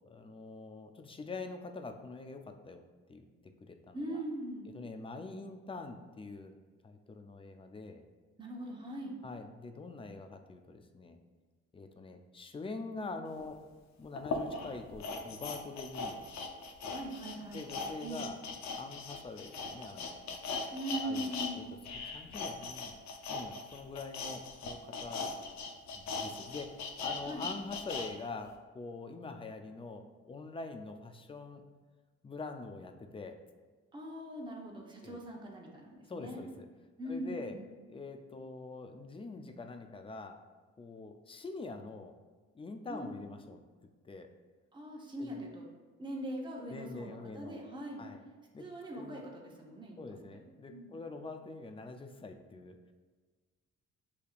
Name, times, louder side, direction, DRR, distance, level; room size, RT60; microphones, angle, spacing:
voice 1, 0.1-2.8 3.1-4.2 4.7-6.6 6.8-8.0 9.2-11.2 11.7-13.6 14.0-16.3 16.8-16.9 17.5-18.4 18.7-20.2 21.0-23.0 23.3-25.3 25.9-31.6 32.2-33.4 35.0-35.2 36.1-36.7 37.1-37.6 37.9-40.4 40.8-42.2 42.5-43.6 44.0-44.3 45.2-45.5 46.7-47.6 48.0-48.2 48.5-48.7 48.9-49.2 50.0-52.8, left 3 dB, 20° left, 6 dB, 0.4 m, -45 dB
voice 2, 3.9-4.7 8.4-9.2 16.9-17.7 18.0-18.3 20.7-21.6 27.2-27.5 33.9-36.4 37.0-37.7 42.9-43.1 44.7-45.7 46.0-48.0 48.6-50.2 50.7-50.9, right 1 dB, 15° right, -2 dB, 0.9 m, -41 dB
sound 1, 13.4-13.5 14.2-21.5 21.8-28.1 28.5-28.6, left 4 dB, 65° left, 0.6 m, -39 dB
6.6 x 2.8 x 2.4 m, 1.4 s
cardioid pair, 90°, 30 cm